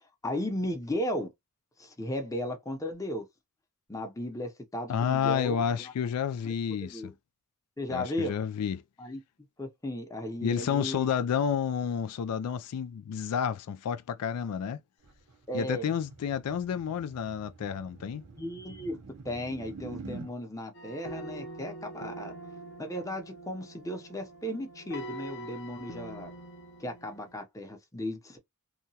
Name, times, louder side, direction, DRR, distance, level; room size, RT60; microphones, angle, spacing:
voice 1, 0.2-1.3 1.8-3.2 3.9-5.9 6.4-6.5 6.8-7.1 7.8-8.3 9.0-9.2 9.6-11.1 15.5-15.9 18.4-19.0 19.2-22.4 22.8-26.3 26.8-28.4, left 1 dB, 15° left, 0.6 m, -35 dB
voice 2, 4.9-7.1 7.9-8.8 10.4-14.8 15.5-18.3, left 7 dB, 85° left, 0.3 m, -30 dB
sound 1, 15.0-20.3, right 4 dB, 80° right, 0.7 m, -47 dB
sound 2, 20.7-27.4, right 1 dB, 50° left, 0.7 m, -44 dB
2.8 x 2.2 x 2.7 m
head